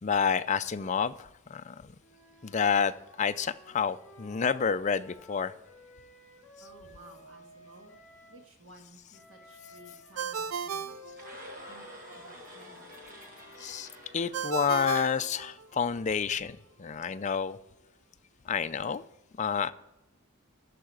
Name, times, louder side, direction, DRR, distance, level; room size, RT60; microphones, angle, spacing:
voice 1, 0.0-1.9 2.4-2.9 3.2-5.5 13.6-13.9 14.1-17.6 18.5-19.0 19.4-19.7, left 6 dB, 35° left, 11 dB, 0.4 m, -29 dB
Wind instrument woodwind instrument, 2.0-8.4 9.1-15.1, left 2 dB, 5° left, 4.0 m, -55 dB
voice 2, 6.6-8.0 8.2-11.0 11.7-11.9 12.1-13.0, right 1 dB, 65° right, 2 dB, 2.0 m, -55 dB
Ringtone, 10.2-11.8 14.3-16.0, right 6 dB, 80° right, 0.4 m, -36 dB
sound 1, 11.1-15.3, equal, 40° right, 1.8 m, -49 dB
13.5 x 4.8 x 7.6 m, 0.93 s
head